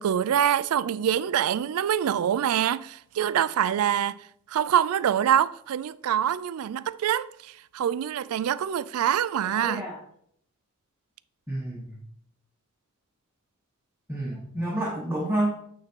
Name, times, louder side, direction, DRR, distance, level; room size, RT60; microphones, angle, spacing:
voice 1, 0.0-4.2 4.5-9.9, right 9 dB, 90° right, 0.3 m, -25 dB
voice 2, 9.4-10.0 11.5-12.0 14.1-15.5, right 1 dB, 10° right, 1.1 m, -29 dB
8.8 x 3.7 x 4.4 m
head